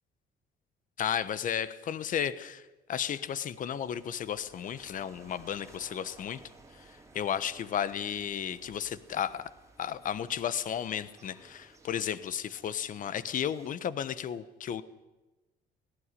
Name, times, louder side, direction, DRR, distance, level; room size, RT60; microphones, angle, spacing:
voice 1, 1.0-6.4 7.1-9.5 9.8-14.8, left 9 dB, 50° left, 15 dB, 1.2 m, -33 dB
sound 1, 3.6-13.7, right 3 dB, 20° right, 2.9 m, -58 dB
18.0 x 16.0 x 9.9 m, 1.1 s
cardioid pair, 110°, 17 cm